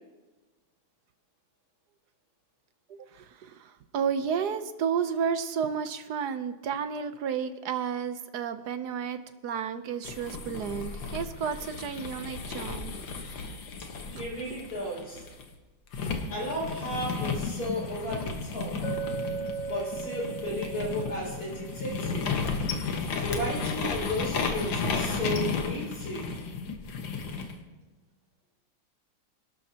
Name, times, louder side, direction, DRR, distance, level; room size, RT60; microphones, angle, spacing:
voice 1, 2.9-12.9 14.1-14.2, right 7 dB, 65° right, 10 dB, 1.1 m, -32 dB
sound 1, 10.0-15.4 15.9-27.5, left 5 dB, 65° left, 2.0 m, -33 dB
voice 2, 14.1-15.2 16.3-18.7 19.6-22.4 23.1-26.3, equal, 45° left, -4 dB, 6.6 m, -34 dB
Chink clink, 18.8-22.8, right 7 dB, 25° left, 1.3 m, -38 dB
25.5 x 12.0 x 2.9 m, 1.2 s
omnidirectional pair, 2.3 m